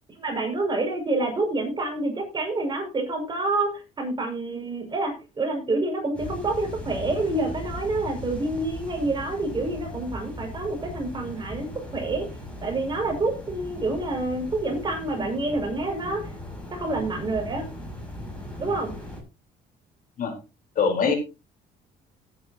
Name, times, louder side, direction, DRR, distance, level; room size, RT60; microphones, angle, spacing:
voice 1, 0.2-11.7 11.9-12.3 12.6-16.3 16.7-17.6 18.6-18.9, right 2 dB, 25° right, 3 dB, 6.2 m, -27 dB
sound 1, 6.1-19.2, left 1 dB, 5° left, 6.9 m, -38 dB
voice 2, 20.8-21.1, left 5 dB, 55° left, 4 dB, 4.3 m, -23 dB
17.0 x 10.5 x 3.0 m, 0.29 s
cardioid pair, 110°, 17 cm